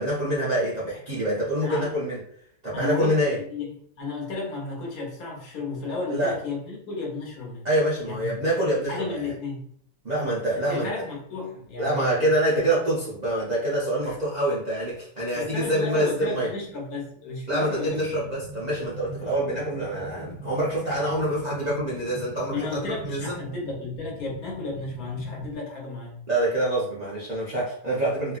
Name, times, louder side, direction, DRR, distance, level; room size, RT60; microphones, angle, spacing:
voice 1, 0.0-2.2 2.6-3.4 6.1-6.3 7.6-9.3 10.0-10.9 11.8-16.5 17.5-23.4 26.3-28.4, right 1 dB, 60° right, -7 dB, 0.4 m, -26 dB
voice 2, 2.7-7.7 8.1-8.5 8.9-9.7 10.7-12.3 14.0-14.2 15.3-18.1 22.5-26.2, left 3 dB, 60° left, -2 dB, 1.2 m, -33 dB
sound 1, 17.9-25.5, right 1 dB, ahead, 1.0 m, -41 dB
3.0 x 2.6 x 2.4 m, 0.65 s
omnidirectional pair, 1.8 m